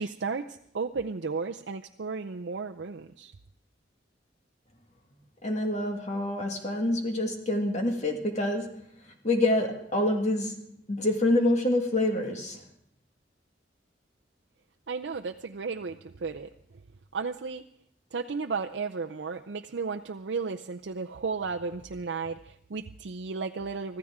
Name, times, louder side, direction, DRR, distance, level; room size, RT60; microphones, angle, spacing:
voice 1, 0.0-3.3 14.9-16.5 17.1-17.6 18.1-24.0, right 4 dB, 75° right, 3 dB, 0.6 m, -34 dB
voice 2, 5.4-8.7 9.2-12.6, left 1 dB, 40° left, 2 dB, 1.8 m, -27 dB
25.0 x 14.0 x 3.7 m, 0.72 s
head